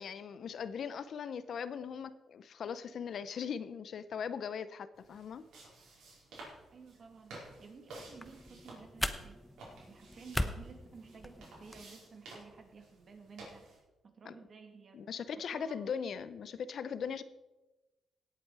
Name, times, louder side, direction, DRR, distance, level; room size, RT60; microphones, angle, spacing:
voice 1, 0.0-5.4 14.2-14.4 14.9-17.2, left 7 dB, 60° left, 14 dB, 0.6 m, -39 dB
sound 1, 4.9-13.8, right 2 dB, 90° right, 5.0 m, -54 dB
voice 2, 6.7-9.4 9.8-13.6 14.0-15.0 15.5-15.8, right 5 dB, 45° right, 5 dB, 2.3 m, -54 dB
sound 2, 7.9-11.9, left 1 dB, 5° left, 0.8 m, -40 dB
17.5 x 8.5 x 4.8 m, 1.1 s
cardioid pair, 110°, 0 cm